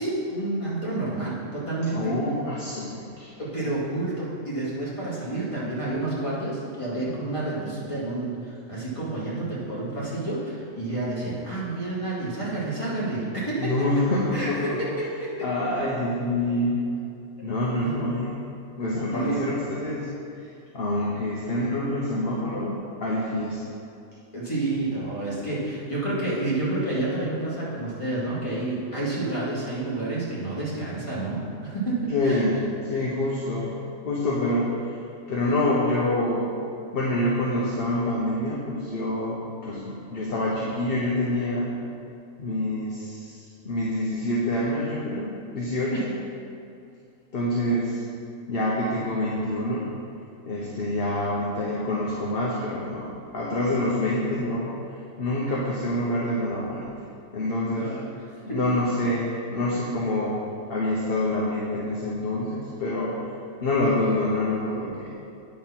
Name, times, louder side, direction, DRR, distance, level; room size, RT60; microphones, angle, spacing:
voice 1, 0.0-2.1 3.4-13.7 14.3-15.3 17.4-17.5 17.8-18.0 19.1-19.5 24.3-32.5 32.9-33.0 45.9-46.0 57.7-58.0, right 2 dB, 25° left, -9 dB, 2.3 m, -29 dB
voice 2, 1.9-3.3 13.6-14.8 15.4-16.9 17.4-18.4 18.8-20.1 20.4-20.5 20.7-23.6 32.1-33.7 34.0-35.0 35.3-36.5 36.9-41.7 42.4-46.2 47.3-48.0 48.5-49.9 50.4-54.7 55.2-56.9 57.3-58.0 58.5-60.4 60.7-63.2 63.6-65.2, left 1 dB, 50° left, -5 dB, 1.1 m, -26 dB
9.5 x 4.2 x 5.8 m, 2.5 s
omnidirectional pair, 1.4 m